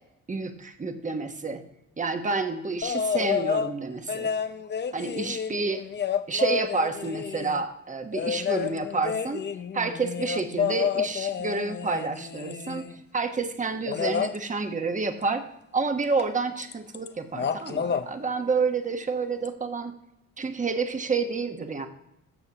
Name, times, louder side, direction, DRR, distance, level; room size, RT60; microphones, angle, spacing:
voice 1, 0.3-1.6 2.0-4.3 4.9-5.8 6.3-9.4 9.7-15.4 15.7-20.0 20.4-21.9, right 4 dB, 25° right, 6 dB, 1.1 m, -29 dB
sound 1, 2.8-3.7 4.1-7.6 8.1-13.0 13.9-14.4 16.2-16.3 16.6-17.1 17.3-18.1 19.4-19.5, left 7 dB, 35° left, 0.6 m, -29 dB
13.0 x 6.9 x 2.9 m, 0.82 s
cardioid pair, 90°, 30 cm